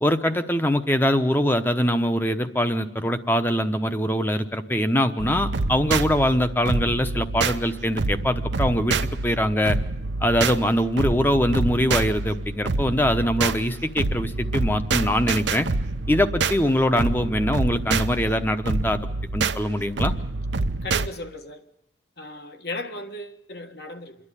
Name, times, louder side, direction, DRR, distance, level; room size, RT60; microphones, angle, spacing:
voice 1, 0.0-9.0 9.2-9.8 10.2-15.7 16.1-19.0 19.3-20.1, equal, 10° left, 0.9 m, -23 dB
sound 1, 5.2-21.1, right 3 dB, 75° right, 0.7 m, -27 dB
voice 2, 20.8-21.6 22.2-24.2, left 1 dB, 55° left, 1.6 m, -36 dB
27.5 x 11.0 x 9.9 m
head